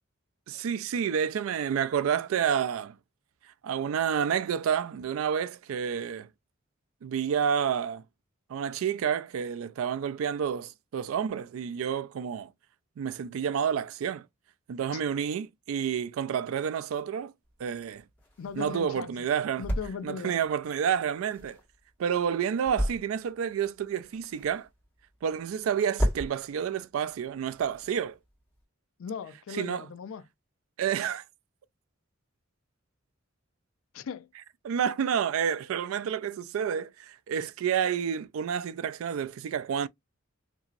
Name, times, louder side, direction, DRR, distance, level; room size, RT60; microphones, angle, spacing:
voice 1, 0.5-3.0 3.6-6.3 7.0-8.0 8.5-12.5 13.0-14.3 14.7-17.3 17.6-18.0 18.6-19.6 20.0-21.6 22.0-24.7 25.2-28.2 29.5-29.9 30.8-31.2 34.6-39.9, right 8 dB, 80° right, 0.3 m, -29 dB
sound 1, 17.4-28.6, equal, 10° left, 1.7 m, -37 dB
voice 2, 18.4-19.3 19.6-20.4 29.0-30.2 33.9-34.3, left 6 dB, 75° left, 0.4 m, -38 dB
2.9 x 2.7 x 2.4 m
head